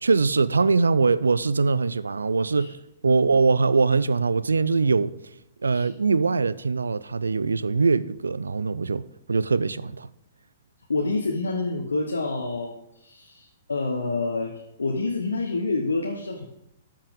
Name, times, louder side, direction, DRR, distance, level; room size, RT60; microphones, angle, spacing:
voice 1, 0.0-2.8 3.0-5.1 5.6-10.1, right 4 dB, 85° right, 0.3 m, -22 dB
voice 2, 10.9-16.4, left 3 dB, 85° left, 1.0 m, -28 dB
13.0 x 5.8 x 3.7 m
hypercardioid pair, 115°, 0 cm